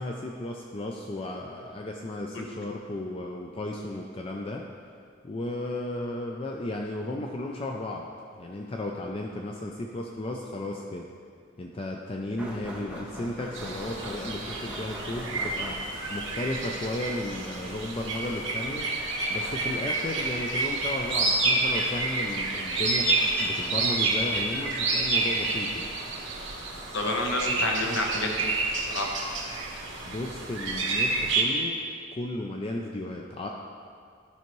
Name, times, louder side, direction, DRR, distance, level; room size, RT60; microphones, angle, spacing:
voice 1, 0.0-4.7 5.2-8.1 8.3-11.1 11.6-18.9 19.3-25.9 30.0-31.8 32.1-33.5, left 1 dB, 30° left, 1 dB, 0.4 m, -34 dB
sound 1, 12.4-16.2, equal, 5° right, 0.8 m, -41 dB
sound 2, 13.5-31.4, right 3 dB, 65° right, 1.5 m, -29 dB
voice 2, 26.9-28.5 28.9-29.1, left 1 dB, 65° left, 1 dB, 0.9 m, -29 dB
12.0 x 5.6 x 3.1 m, 2.2 s
head